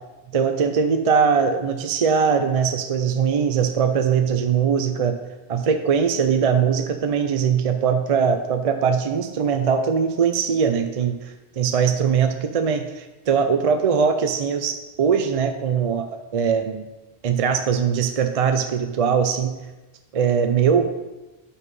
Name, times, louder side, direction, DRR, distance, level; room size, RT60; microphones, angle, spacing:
voice 1, 0.3-5.2 5.5-16.9 17.2-19.5 20.1-20.9, right 6 dB, 50° right, 7 dB, 0.4 m, -21 dB
6.0 x 5.6 x 5.3 m, 1.1 s
omnidirectional pair, 1.1 m